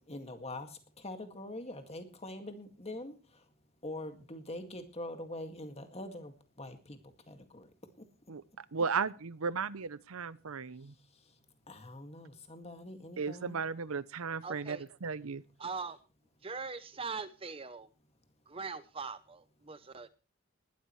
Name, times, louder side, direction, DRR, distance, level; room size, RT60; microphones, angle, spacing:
voice 1, 0.0-3.5 3.8-7.7 8.0-8.1 10.8-11.4 11.7-13.6, left 1 dB, 30° left, 7 dB, 2.0 m, -44 dB
voice 2, 8.3-10.9 13.2-15.4, right 5 dB, 80° right, 18 dB, 0.7 m, -35 dB
voice 3, 14.4-14.8 15.6-16.0 16.4-17.9 18.5-20.1, right 4 dB, 25° right, 13 dB, 0.6 m, -41 dB
20.0 x 12.5 x 3.2 m, 0.33 s
head